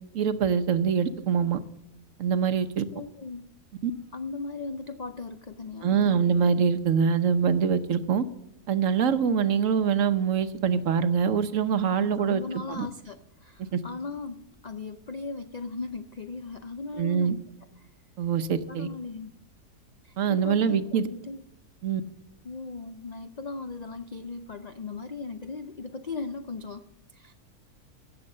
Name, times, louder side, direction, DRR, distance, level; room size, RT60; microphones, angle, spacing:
voice 1, 0.1-1.6 2.2-2.9 3.8-3.9 5.8-8.3 8.7-12.4 12.7-12.9 13.7-13.8 17.0-17.4 18.2-18.9 20.2-21.1 21.8-22.0, right 7 dB, 60° right, 11 dB, 1.1 m, -24 dB
voice 2, 2.9-3.5 4.1-6.2 12.0-17.4 17.8-17.9 18.7-19.4 20.0-21.4 22.4-27.3, left 4 dB, 75° left, 9 dB, 0.3 m, -38 dB
17.0 x 7.0 x 6.5 m, 0.87 s
omnidirectional pair, 1.6 m